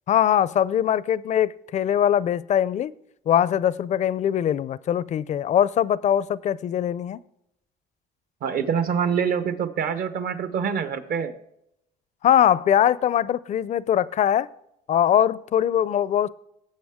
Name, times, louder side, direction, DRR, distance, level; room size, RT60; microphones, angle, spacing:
voice 1, 0.1-2.9 3.3-7.2 12.2-14.5 14.9-16.3, left 10 dB, 45° left, 0.4 m, -21 dB
voice 2, 8.4-11.3, right 7 dB, 60° right, 1.0 m, -25 dB
17.5 x 7.7 x 3.6 m
cardioid pair, 110°, 17 cm